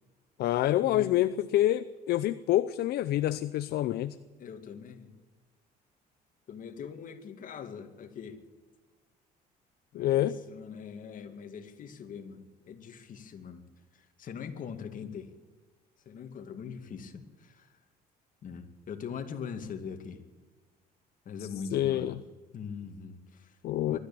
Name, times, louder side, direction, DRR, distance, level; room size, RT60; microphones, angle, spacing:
voice 1, 0.4-4.2 9.9-10.4 21.7-22.1 23.6-24.0, left 13 dB, 70° left, 13 dB, 0.7 m, -27 dB
voice 2, 4.4-5.1 6.5-8.4 9.9-13.6 13.9-15.3 16.1-17.7 18.4-20.2 21.3-22.2 22.5-23.6 23.9-24.0, left 6 dB, 50° left, 6 dB, 2.4 m, -42 dB
22.5 x 13.5 x 8.9 m, 1.4 s
cardioid pair, 110°, 17 cm